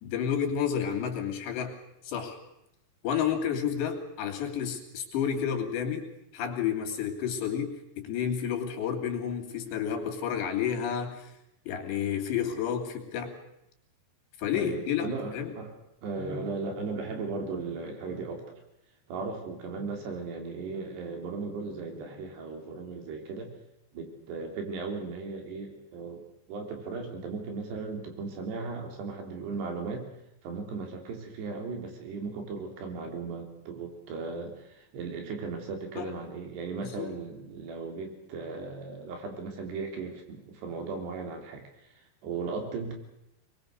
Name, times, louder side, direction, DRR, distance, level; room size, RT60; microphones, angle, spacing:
voice 1, 0.0-1.8 2.1-2.4 3.0-6.1 6.3-11.3 11.7-13.3 14.4-15.5 36.0-36.1 36.8-37.1, left 8 dB, 85° left, 4 dB, 5.1 m, -30 dB
voice 2, 14.5-15.7 16.0-18.6 19.1-23.5 23.9-30.1 30.4-42.9, right 4 dB, 75° right, 4 dB, 5.5 m, -37 dB
22.5 x 21.5 x 6.6 m, 0.83 s
omnidirectional pair, 4.9 m